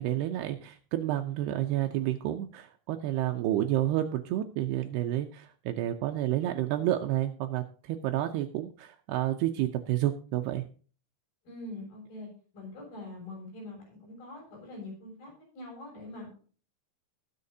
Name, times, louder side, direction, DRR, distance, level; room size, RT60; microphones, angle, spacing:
voice 1, 0.0-10.7, right 13 dB, 85° right, 5 dB, 2.3 m, -30 dB
voice 2, 11.5-16.5, left 2 dB, 45° left, -1 dB, 8.8 m, -44 dB
20.5 x 7.4 x 2.8 m, 0.39 s
omnidirectional pair, 5.6 m